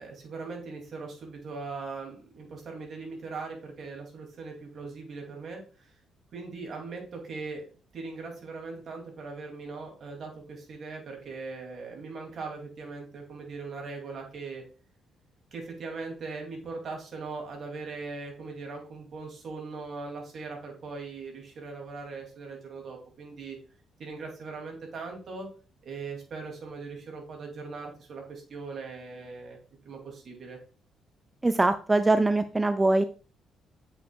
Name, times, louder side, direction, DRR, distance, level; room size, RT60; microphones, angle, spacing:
voice 1, 0.0-5.6 6.3-7.6 7.9-14.6 15.5-23.6 24.0-25.5 25.8-29.6 29.8-30.6, right 4 dB, 55° right, 1 dB, 2.4 m, -40 dB
voice 2, 31.4-33.0, right 2 dB, 20° right, 11 dB, 0.4 m, -23 dB
7.8 x 5.3 x 2.3 m, 0.37 s
cardioid pair, 90°, 0 cm